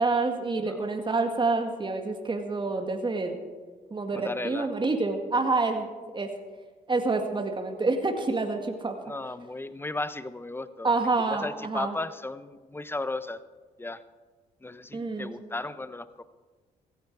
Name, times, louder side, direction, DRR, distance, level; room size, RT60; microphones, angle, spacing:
voice 1, 0.0-3.3 3.9-6.3 6.9-9.0 10.8-11.9 14.9-15.4, right 3 dB, 25° right, 4 dB, 1.9 m, -27 dB
voice 2, 4.1-4.7 9.0-10.9 11.2-13.4 13.8-14.0 14.6-16.2, left 2 dB, 10° left, 14 dB, 0.8 m, -35 dB
16.5 x 14.0 x 4.7 m, 1.4 s
supercardioid pair, 60°, 18 cm